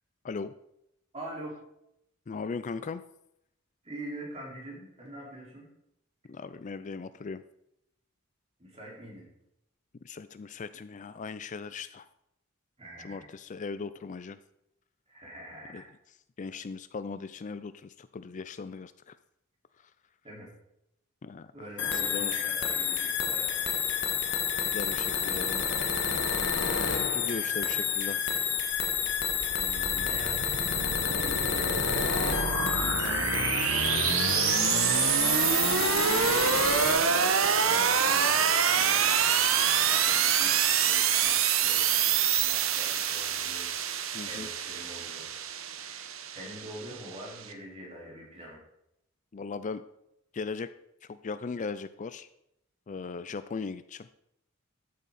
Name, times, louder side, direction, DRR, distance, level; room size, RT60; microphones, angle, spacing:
voice 1, 1.1-1.6 3.8-5.7 8.6-9.3 12.8-13.3 15.1-15.9 20.2-20.5 21.5-23.9 29.5-30.4 31.0-35.2 35.6-45.3 45.8-48.6, right 1 dB, 30° right, -4 dB, 4.7 m, -45 dB
voice 2, 2.3-3.0 6.3-7.4 10.0-12.1 13.0-14.4 15.7-15.8 16.4-19.2 21.2-21.5 21.9-22.3 24.7-25.7 27.1-28.4 44.1-44.5 49.3-49.8 50.3-50.7 51.1-52.3 52.9-54.1, left 4 dB, 40° left, 13 dB, 0.4 m, -38 dB
sound 1, 21.8-37.0, left 7 dB, 60° left, 1.7 m, -29 dB
sound 2, 28.7-47.5, right 7 dB, 80° right, 1.0 m, -26 dB
13.5 x 8.6 x 4.2 m, 0.81 s
head